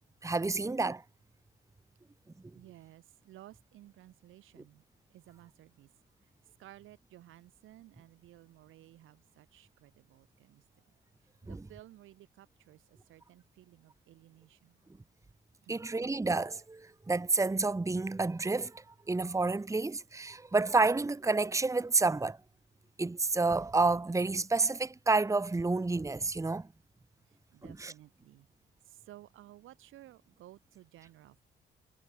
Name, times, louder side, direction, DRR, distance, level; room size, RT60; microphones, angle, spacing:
voice 1, 0.2-1.0 11.5-11.6 15.7-22.4 23.0-26.7 27.6-27.9, right 3 dB, 15° right, 1.3 m, -29 dB
voice 2, 2.5-4.8 5.1-5.9 6.6-10.6 11.5-14.8 15.6-15.9 27.5-28.5 28.8-31.4, right 14 dB, 85° right, 4.3 m, -56 dB
cardioid pair, 90°, 20 cm